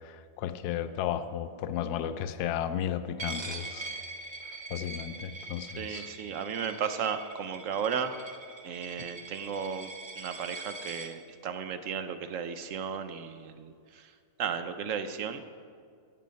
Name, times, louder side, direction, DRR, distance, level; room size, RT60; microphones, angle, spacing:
voice 1, 0.0-3.9 4.7-6.1 9.0-9.1, left 10 dB, 80° left, 11 dB, 1.1 m, -34 dB
Coin (dropping), 3.2-11.1, right 3 dB, 35° right, 0.4 m, -42 dB
voice 2, 5.8-8.4 8.6-9.9 10.2-13.7 14.4-15.5, right 7 dB, 65° right, 9 dB, 0.9 m, -34 dB
12.0 x 7.7 x 5.2 m, 2.2 s
omnidirectional pair, 1.7 m